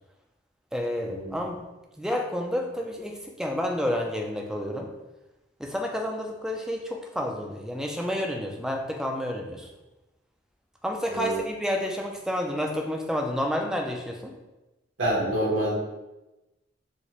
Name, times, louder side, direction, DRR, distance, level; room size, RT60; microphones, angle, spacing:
voice 1, 0.7-1.6 2.0-4.9 5.6-9.7 10.8-14.3, equal, 5° right, 2 dB, 0.3 m, -30 dB
voice 2, 15.0-15.7, right 1 dB, 90° right, -7 dB, 1.5 m, -27 dB
4.0 x 2.4 x 3.0 m, 1.0 s
head